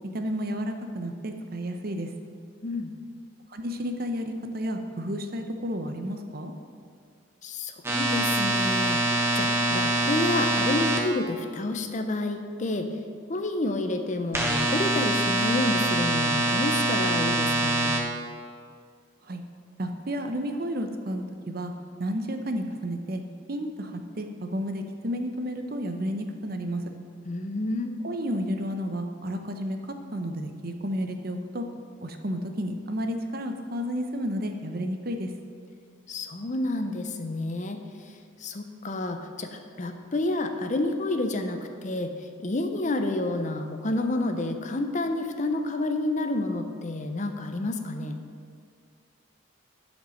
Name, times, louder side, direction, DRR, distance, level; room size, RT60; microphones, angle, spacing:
voice 1, 0.1-2.1 3.5-6.5 19.2-19.4 19.8-21.7 22.0-23.2 23.5-26.9 28.0-31.6 32.0-35.3, equal, 45° right, 5 dB, 0.8 m, -31 dB
voice 2, 2.6-2.9 7.4-9.0 9.3-12.9 13.3-17.9 27.3-28.0 36.1-48.2, left 2 dB, 35° left, 6 dB, 0.6 m, -29 dB
sound 1, 7.8-11.0 14.3-18.0, right 1 dB, 10° right, 1.0 m, -24 dB
11.0 x 5.3 x 6.4 m, 2.2 s
head